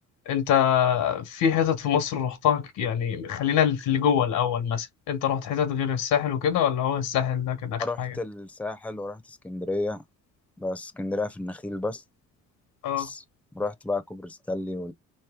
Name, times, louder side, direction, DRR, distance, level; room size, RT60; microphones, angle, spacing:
voice 1, 0.3-8.1 12.8-13.1, left 9 dB, 90° left, 1.0 m, -24 dB
voice 2, 7.8-10.0 10.6-12.0 13.0-13.2 13.5-14.9, left 2 dB, 5° left, 0.6 m, -32 dB
3.0 x 2.8 x 3.5 m
cardioid pair, 90°, 30 cm